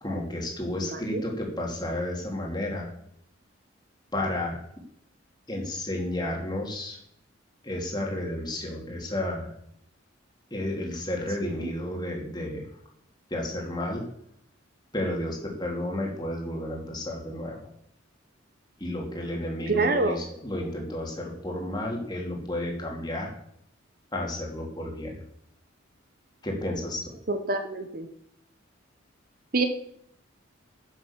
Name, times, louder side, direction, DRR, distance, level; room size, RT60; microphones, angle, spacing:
voice 1, 0.0-2.9 4.1-4.6 5.5-7.0 7.6-9.5 10.5-12.7 13.3-14.0 14.9-17.7 18.8-23.3 24.1-25.2 26.4-27.2, left 1 dB, 20° left, -1 dB, 2.8 m, -32 dB
voice 2, 0.8-1.2 11.4-11.7 19.7-20.2 27.3-28.1 29.5-29.7, right 3 dB, 45° right, 8 dB, 0.9 m, -27 dB
11.5 x 7.0 x 7.3 m, 0.72 s
head